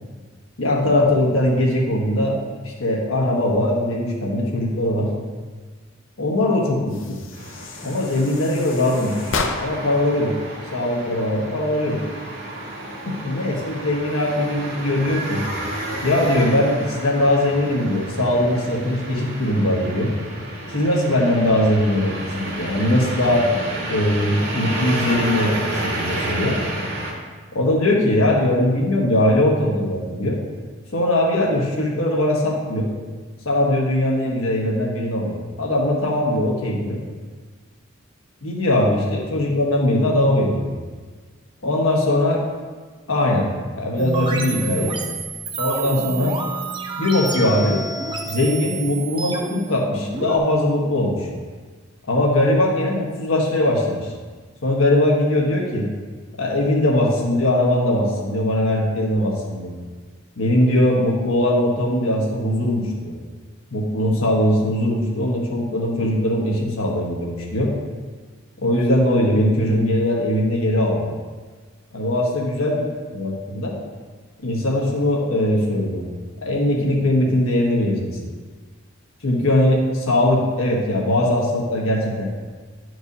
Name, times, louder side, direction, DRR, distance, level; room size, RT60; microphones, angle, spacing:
voice 1, 0.6-2.4 2.6-5.1 6.2-7.2 7.8-9.2 9.6-10.3 10.7-12.0 13.2-15.4 16.0-20.1 20.7-23.5 23.9-26.6 27.5-30.4 30.9-32.9 33.4-37.0 38.4-40.7 41.6-42.4 43.1-43.5 43.8-45.0 45.6-46.3 47.0-47.8 48.2-51.3 52.1-54.1 54.6-55.9 56.4-59.7 60.4-63.2 63.7-67.7 68.6-71.1 71.9-72.8 73.1-73.8 74.4-76.0 76.4-78.1 79.2-82.3, left 1 dB, 85° left, -2 dB, 1.4 m, -20 dB
sound 1, 6.9-10.0, left 4 dB, 70° left, 0.6 m, -31 dB
sound 2, 7.3-27.1, right 1 dB, 55° right, 1.7 m, -31 dB
sound 3, 44.0-50.4, right 3 dB, 25° right, 0.6 m, -29 dB
10.5 x 4.6 x 2.8 m, 1.5 s
head